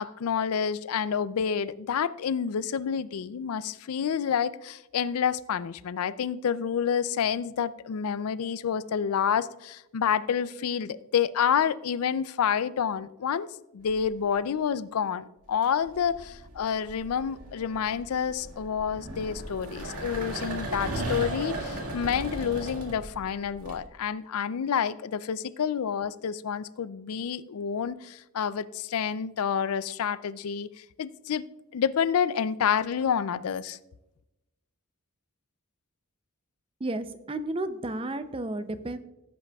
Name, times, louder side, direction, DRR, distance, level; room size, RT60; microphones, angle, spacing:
voice 1, 0.0-13.5 13.7-31.4 31.7-33.8, left 7 dB, 75° left, 17 dB, 0.4 m, -28 dB
sound 1, 13.9-14.3 15.5-23.7, right 1 dB, 85° right, 2.0 m, -37 dB
voice 2, 36.8-39.0, right 2 dB, 25° right, 11 dB, 0.5 m, -32 dB
15.5 x 8.2 x 2.3 m, 0.94 s
head